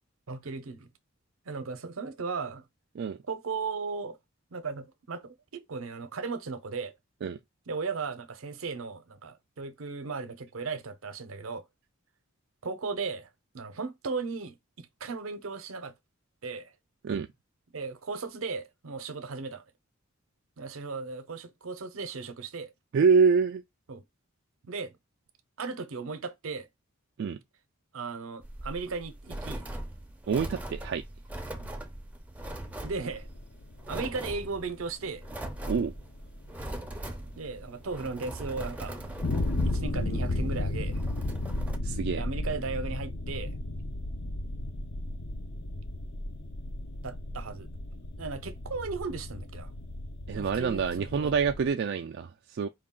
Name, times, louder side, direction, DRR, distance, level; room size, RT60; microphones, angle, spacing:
voice 1, 0.3-0.9 1.5-2.6 3.3-4.2 4.5-7.0 7.7-11.6 12.6-13.3 13.5-15.9 16.4-16.7 17.7-19.6 20.6-22.7 23.9-24.0 24.7-25.0 25.6-26.7 27.9-29.7 31.6-31.7 32.8-33.3 33.9-35.3 37.4-39.1 39.6-41.0 42.1-43.6 47.0-47.7 48.2-49.7 50.3-51.3, right 4 dB, 75° right, 0.7 m, -36 dB
voice 2, 22.9-23.6 27.2-27.4 30.3-31.0 35.7-35.9 41.8-42.2 50.3-52.7, right 5 dB, 55° right, 0.3 m, -26 dB
sound 1, 28.4-41.8, right 1 dB, 5° right, 0.5 m, -41 dB
sound 2, 32.4-51.7, left 2 dB, 55° left, 0.6 m, -34 dB
4.7 x 2.3 x 3.7 m
head